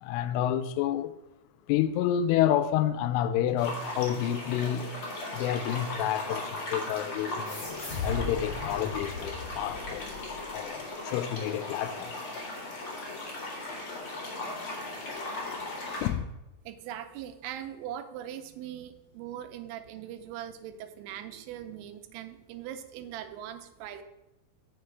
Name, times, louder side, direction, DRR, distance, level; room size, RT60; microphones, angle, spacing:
voice 1, 0.0-1.2 1.7-4.9 5.3-7.6 8.0-12.1 16.0-16.2, left 11 dB, 85° left, 3.0 m, -29 dB
sound 1, 3.6-16.1, left 2 dB, 55° left, 1.5 m, -37 dB
sound 2, 7.4-10.5, left 3 dB, 35° left, 3.6 m, -37 dB
voice 2, 16.7-24.0, right 10 dB, 90° right, 3.3 m, -41 dB
8.5 x 6.6 x 4.5 m
omnidirectional pair, 5.6 m